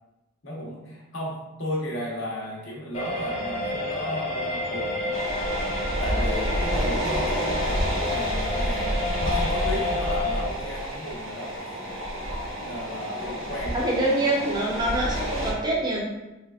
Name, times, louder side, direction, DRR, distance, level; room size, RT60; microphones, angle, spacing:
voice 1, 0.4-5.2 6.0-11.5 12.6-14.0 14.7-15.0, equal, 65° left, -4 dB, 1.0 m, -34 dB
sound 1, 2.9-10.4, left 2 dB, 30° left, 0.5 m, -30 dB
sound 2, 5.1-15.5, equal, 70° right, 1.0 m, -29 dB
voice 2, 13.7-16.0, right 1 dB, 20° right, -3 dB, 0.6 m, -25 dB
3.3 x 3.3 x 2.3 m, 1.0 s
head